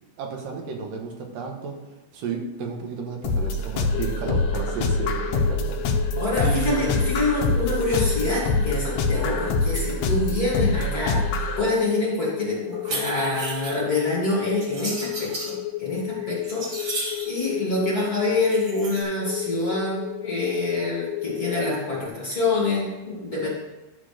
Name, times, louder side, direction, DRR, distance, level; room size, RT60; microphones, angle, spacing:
voice 1, 0.2-6.9, right 5 dB, 90° right, 2 dB, 2.9 m, -32 dB
sound 1, 3.2-11.6, left 2 dB, 75° left, 2.0 m, -25 dB
sound 2, 3.9-22.1, left 12 dB, 90° left, 2.3 m, -34 dB
voice 2, 6.2-23.5, left 2 dB, 30° left, -5 dB, 2.1 m, -26 dB
sound 3, 12.7-13.8 14.6-15.5 16.1-17.4 18.4-19.0, right 2 dB, 45° right, 1.9 m, -33 dB
11.0 x 4.0 x 6.6 m, 1.1 s
omnidirectional pair, 3.8 m